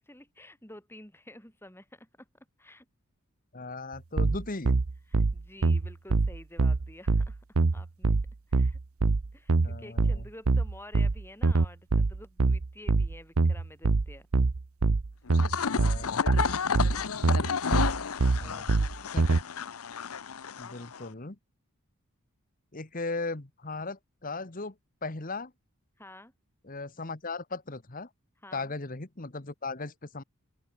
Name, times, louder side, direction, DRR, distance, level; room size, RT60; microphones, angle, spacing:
voice 1, 0.0-2.3 2.6-2.9 5.1-7.4 7.7-8.2 8.5-8.8 9.3-14.3 17.9-19.0 26.0-26.3 28.4-28.7, left 1 dB, 10° left, 7.9 m, -50 dB
voice 2, 3.5-4.7 9.5-10.2 15.7-16.2 18.3-18.8 19.1-19.4 20.6-21.4 22.7-24.7 25.0-25.5 26.6-28.1 28.5-30.2, left 3 dB, 40° left, 1.4 m, -37 dB
sound 1, 4.2-19.4, right 3 dB, 75° right, 0.8 m, -24 dB
sound 2, 15.3-21.1, left 6 dB, 75° left, 0.8 m, -32 dB
open air
head